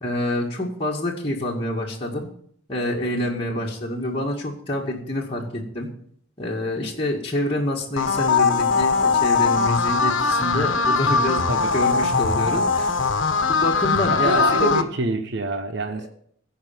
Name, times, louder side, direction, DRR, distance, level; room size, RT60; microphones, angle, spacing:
voice 1, 0.0-2.3 2.7-5.9 6.4-11.4 11.7-12.9 13.4-14.8, left 1 dB, 25° left, 2.1 m, -26 dB
sound 1, 8.0-14.8, left 5 dB, 65° left, 1.3 m, -21 dB
voice 2, 14.1-16.1, right 2 dB, 60° right, 1.0 m, -26 dB
16.5 x 5.6 x 9.3 m
head